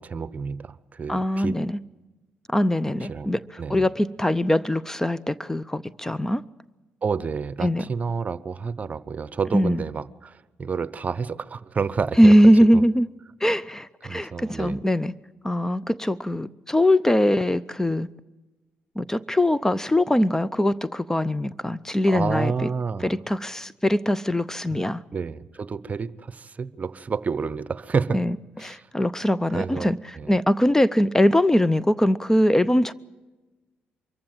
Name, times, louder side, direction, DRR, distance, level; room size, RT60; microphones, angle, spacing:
voice 1, 0.0-1.6 3.1-3.3 3.6-3.9 7.0-12.3 12.7-12.8 14.0-14.8 22.1-23.2 24.7-24.8 25.1-28.2 28.6-28.9 29.5-30.3, right 5 dB, 40° right, 0.9 m, -29 dB
voice 2, 1.1-1.8 2.5-6.4 7.6-7.8 9.5-9.8 12.2-13.1 13.4-15.1 15.4-18.1 19.0-22.5 23.0-25.0 28.1-28.4 28.6-30.0 30.3-32.9, equal, 10° left, 0.6 m, -21 dB
24.0 x 15.0 x 9.0 m
supercardioid pair, 60°, 4 cm